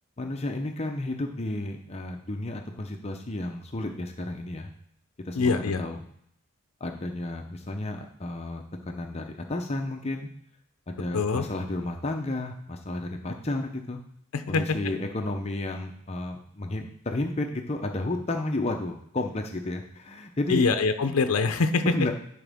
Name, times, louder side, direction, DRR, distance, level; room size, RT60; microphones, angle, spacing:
voice 1, 0.2-4.7 5.2-6.0 6.8-10.3 10.9-14.0 14.5-20.7 21.1-21.2 21.8-22.1, left 2 dB, 30° left, 3 dB, 0.6 m, -32 dB
voice 2, 5.3-5.8 11.1-11.4 14.3-14.6 20.5-21.8, left 4 dB, 75° left, 8 dB, 0.6 m, -24 dB
11.0 x 4.9 x 3.5 m, 0.72 s
head